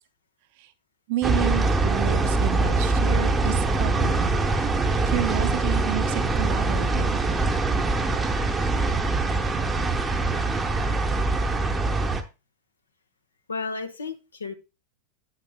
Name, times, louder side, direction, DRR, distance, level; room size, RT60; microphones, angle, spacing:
voice 1, 1.1-4.4 5.1-7.2, right 13 dB, 50° right, 0.8 m, -30 dB
sound 1, 1.2-12.2, right 3 dB, 15° right, 0.9 m, -23 dB
voice 2, 13.5-14.5, left 4 dB, 75° left, 1.1 m, -32 dB
8.9 x 8.3 x 2.2 m
figure-of-eight pair, 90°, 0 cm